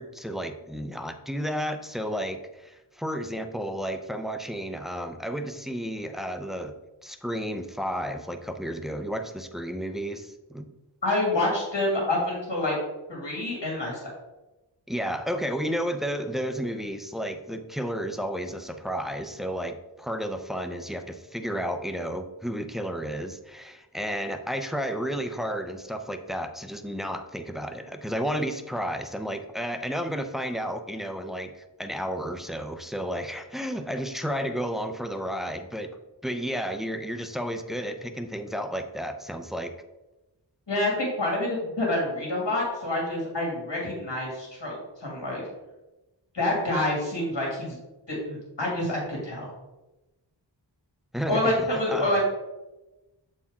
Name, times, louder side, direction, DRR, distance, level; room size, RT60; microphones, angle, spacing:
voice 1, 0.0-6.7 7.0-10.7 14.9-36.0 36.2-39.7 51.1-52.1, equal, ahead, 7 dB, 0.5 m, -32 dB
voice 2, 11.0-12.7 13.1-13.9 40.7-45.4 46.3-47.8 48.1-49.5 51.3-52.2, left 1 dB, 65° left, -3 dB, 2.1 m, -27 dB
7.0 x 4.4 x 3.6 m, 1.0 s
wide cardioid pair, 40°, 44 cm